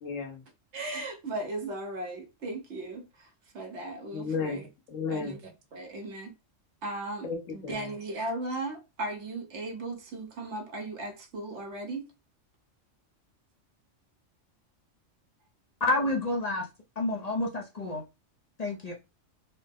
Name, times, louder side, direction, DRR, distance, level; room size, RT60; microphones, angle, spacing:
voice 1, 0.0-0.4 4.1-5.4 7.2-8.0, left 5 dB, 85° left, 1.4 m, -34 dB
voice 2, 0.7-3.3 3.5-4.7 5.1-5.4 5.7-6.3 6.8-7.3 7.7-12.0, right 2 dB, 65° right, 1.2 m, -36 dB
voice 3, 15.8-16.7 17.0-18.0 18.6-18.9, left 2 dB, 45° left, 0.5 m, -29 dB
4.2 x 2.0 x 3.4 m
omnidirectional pair, 1.3 m